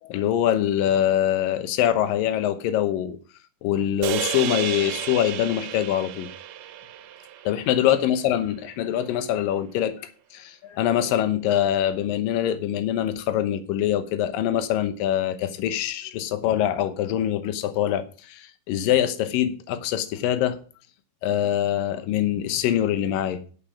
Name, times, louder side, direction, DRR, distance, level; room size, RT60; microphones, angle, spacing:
voice 1, 0.0-3.2 3.6-6.3 7.4-20.6 21.2-23.4, left 11 dB, 75° left, 2.6 m, -24 dB
sound 1, 4.0-8.4, right 11 dB, 80° right, 2.6 m, -32 dB
11.5 x 5.4 x 7.2 m
omnidirectional pair, 4.3 m